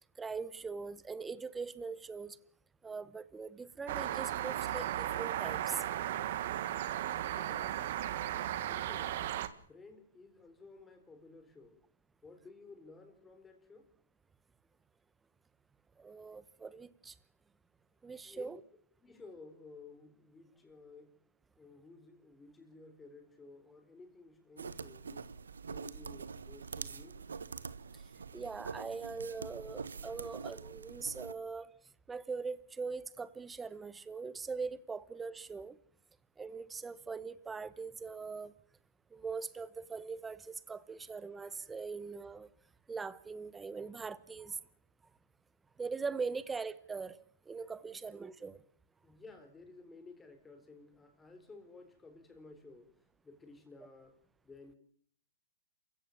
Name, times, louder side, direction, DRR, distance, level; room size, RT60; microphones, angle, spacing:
voice 1, 0.2-2.4 2.8-5.8 16.0-17.1 18.0-18.6 28.3-31.7 32.1-35.8 36.4-38.5 39.1-42.5 42.9-44.6 45.8-48.6, right 4 dB, 10° right, 1.0 m, -41 dB
sound 1, 3.9-9.5, right 12 dB, 50° right, 1.6 m, -36 dB
voice 2, 7.3-8.1 8.6-9.2 9.7-11.8 12.2-13.9 18.2-18.5 19.0-21.1 21.6-25.3 25.7-27.2 47.8-48.0 49.0-52.9 53.2-54.2 54.4-54.8, left 3 dB, 10° left, 4.1 m, -55 dB
sound 2, 24.6-31.3, right 5 dB, 80° right, 1.4 m, -45 dB
27.5 x 16.0 x 7.3 m
hypercardioid pair, 135°, 0 cm